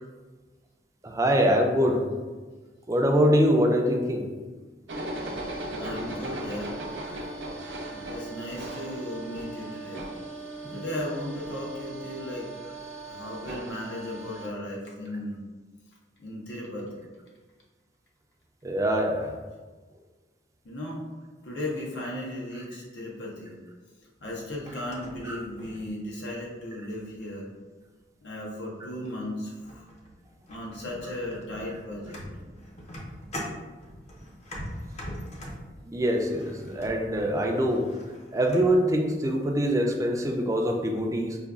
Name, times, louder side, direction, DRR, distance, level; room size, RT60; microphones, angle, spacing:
voice 1, 1.0-2.1 2.9-4.3 10.6-10.8 18.6-19.3 25.2-25.4 28.8-28.9 35.8-37.9 38.3-41.4, equal, 20° right, 2 dB, 0.4 m, -24 dB
sound 1, 4.9-14.5, right 2 dB, 85° right, 0.6 m, -37 dB
voice 2, 5.7-6.8 7.2-7.3 7.9-10.0 10.7-12.6 13.0-15.4 16.2-17.0 20.6-21.0 21.4-23.6 24.2-27.5 28.2-29.9 30.5-32.2, left 1 dB, 80° left, -3 dB, 0.7 m, -36 dB
sound 2, 24.2-26.4 26.9-27.4 28.4-28.5 29.0-29.3 29.6-38.8, equal, 40° left, 0.6 m, -43 dB
5.0 x 2.3 x 2.3 m, 1.3 s
head